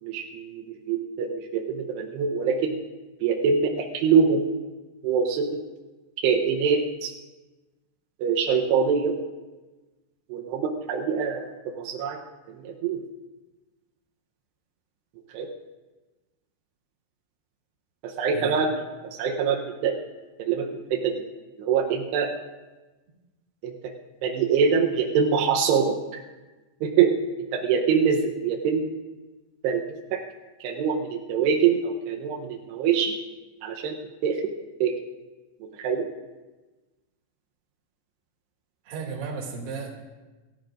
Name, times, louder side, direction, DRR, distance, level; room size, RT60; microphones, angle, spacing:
voice 1, 0.0-2.8 3.2-4.5 5.0-5.6 6.2-7.1 8.2-9.1 10.3-12.2 12.5-13.0 15.3-15.5 18.0-18.7 19.2-20.0 20.4-21.2 21.6-22.3 23.6-23.9 24.2-26.2 26.8-27.1 27.5-28.9 29.6-29.8 30.1-30.2 30.6-33.1 33.6-34.0 34.2-34.4 34.8-34.9 35.8-36.1, right 6 dB, 80° right, 1 dB, 2.4 m, -24 dB
voice 2, 38.9-39.9, right 5 dB, 55° right, 0 dB, 4.0 m, -34 dB
28.5 x 13.0 x 2.5 m, 1.2 s
omnidirectional pair, 6.0 m